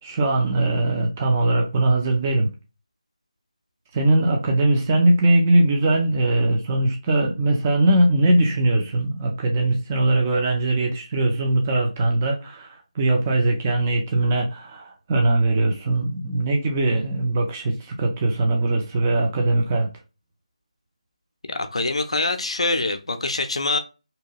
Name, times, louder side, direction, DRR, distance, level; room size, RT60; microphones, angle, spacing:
voice 1, 0.0-2.5 3.9-19.9, right 2 dB, 15° right, 0.3 m, -21 dB
voice 2, 21.5-23.8, left 2 dB, 60° left, 0.4 m, -24 dB
2.8 x 2.2 x 2.8 m
figure-of-eight pair, 160°, 4 cm